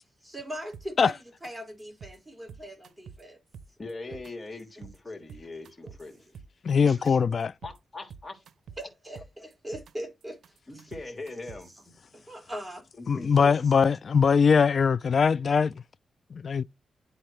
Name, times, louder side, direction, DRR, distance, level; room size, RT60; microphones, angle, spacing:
voice 1, 0.2-3.4 4.1-4.2 5.8-6.2 7.1-7.2 8.8-10.4 10.7-10.8 12.1-12.9 13.1-13.2 13.6-13.7, equal, 10° right, 3.9 m, -41 dB
sound 1, 0.7-1.1 1.4-1.5 1.8-2.2 2.5-3.2 3.5-4.3 4.6-5.0 5.3-6.7 7.0-7.1 7.4-7.8 8.1-8.8 9.1-9.9 10.2-11.8, right 6 dB, 85° right, 0.6 m, -47 dB
voice 2, 3.8-6.2 6.8-7.2 7.6-8.4 10.7-11.7 13.0-13.7, left 2 dB, 30° left, 2.9 m, -41 dB
voice 3, 6.6-7.5 13.1-15.7 16.3-16.6, left 6 dB, 55° left, 0.3 m, -21 dB
11.5 x 4.0 x 3.2 m
cardioid pair, 90°, 0 cm